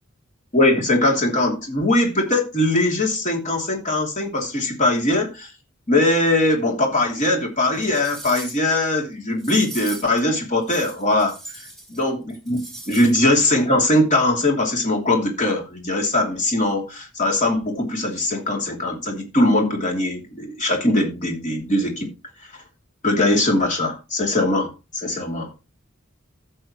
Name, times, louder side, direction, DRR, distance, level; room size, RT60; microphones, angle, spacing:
voice 1, 0.5-5.5 5.9-11.3 11.9-12.6 12.9-22.1 23.0-25.6, left 1 dB, 35° left, 3.0 m, -21 dB
sound 1, 7.2-7.3 7.7-8.7 9.4-10.2 10.6-12.0 12.3-13.2 13.5-13.6, right 2 dB, ahead, 3.6 m, -39 dB
15.0 x 6.6 x 3.1 m
head